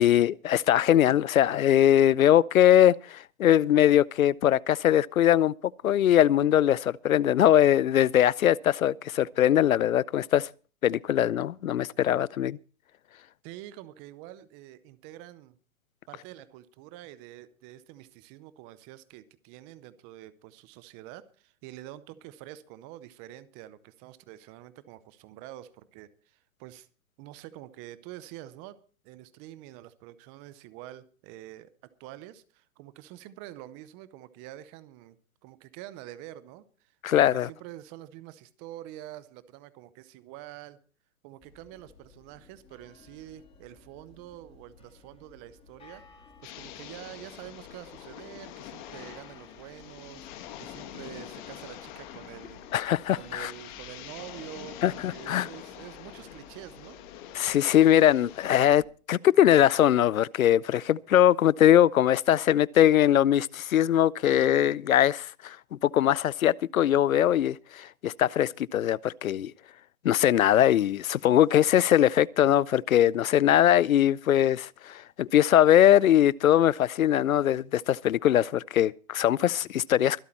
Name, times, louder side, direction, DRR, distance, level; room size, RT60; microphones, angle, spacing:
voice 1, 0.0-5.5 5.8-10.5 10.8-12.6 37.0-37.5 52.7-53.5 54.8-55.5 57.3-58.8 59.1-65.6 65.8-69.5 70.0-80.2, left 11 dB, 75° left, 0.6 m, -21 dB
voice 2, 13.4-15.6 16.1-26.9 27.2-28.8 29.0-35.2 35.4-40.8 41.2-46.0 46.4-50.3 50.6-52.6 53.2-57.0, right 14 dB, 15° right, 0.6 m, -46 dB
sound 1, 41.4-58.9, left 3 dB, 15° left, 3.8 m, -56 dB
sound 2, 46.4-58.7, left 12 dB, 35° left, 2.0 m, -45 dB
23.5 x 8.3 x 4.4 m
hypercardioid pair, 135°, 42 cm